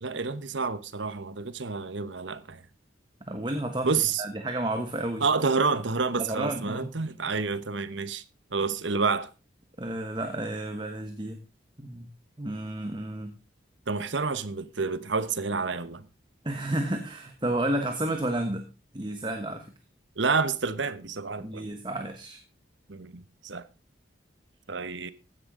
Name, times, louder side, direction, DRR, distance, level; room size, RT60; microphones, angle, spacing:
voice 1, 0.0-2.6 3.8-4.2 5.2-8.2 8.5-9.3 13.9-16.0 20.2-21.7 22.9-23.6 24.7-25.1, right 4 dB, 80° right, 1.1 m, -29 dB
voice 2, 3.3-3.9 4.2-5.3 6.2-6.9 9.8-11.4 11.8-12.1 12.4-13.4 16.4-18.6 18.9-19.7 21.4-22.4, right 1 dB, 25° right, 1.2 m, -31 dB
15.5 x 10.5 x 3.8 m
head